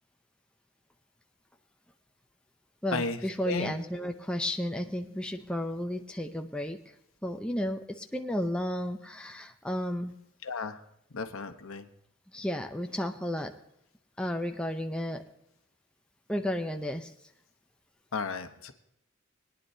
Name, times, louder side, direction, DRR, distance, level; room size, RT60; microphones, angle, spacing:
voice 1, 2.8-6.8 7.2-10.2 12.3-13.5 14.2-15.2 16.3-17.1, left 1 dB, 5° left, 4 dB, 0.6 m, -33 dB
voice 2, 10.4-10.8 11.1-11.9 18.1-18.7, left 4 dB, 80° left, 7 dB, 1.1 m, -34 dB
21.5 x 10.0 x 2.8 m, 0.76 s
head